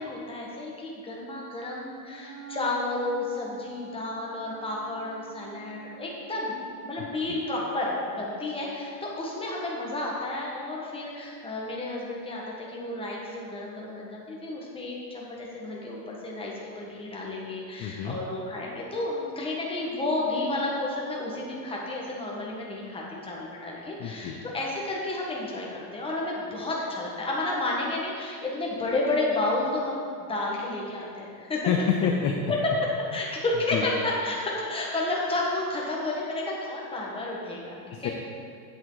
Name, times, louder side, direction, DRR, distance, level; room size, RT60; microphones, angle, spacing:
voice 1, 0.0-31.7 33.1-38.1, left 2 dB, 10° left, -3 dB, 1.5 m, -31 dB
Wind instrument woodwind instrument, 2.0-8.7, right 6 dB, 55° right, 2.2 m, -47 dB
voice 2, 7.0-7.4 17.8-18.2 24.0-24.4 31.7-32.3 33.7-33.9 37.9-38.1, left 8 dB, 35° left, 2 dB, 0.6 m, -28 dB
8.8 x 7.5 x 3.9 m, 2.2 s
supercardioid pair, 145°, 48 cm